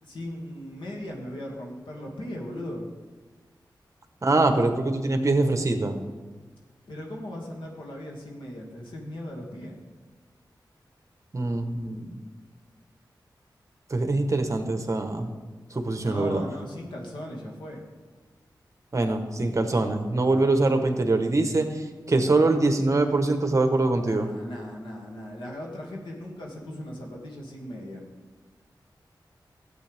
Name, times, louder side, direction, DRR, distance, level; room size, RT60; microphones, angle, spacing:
voice 1, 0.0-2.9 6.9-9.8 16.0-17.8 24.0-28.1, left 1 dB, 90° left, -1 dB, 2.2 m, -38 dB
voice 2, 4.2-5.9 11.3-12.2 13.9-15.3 15.7-16.4 18.9-24.3, right 2 dB, 40° right, 6 dB, 1.1 m, -23 dB
13.5 x 8.4 x 3.5 m, 1.4 s
wide cardioid pair, 80°, 8 cm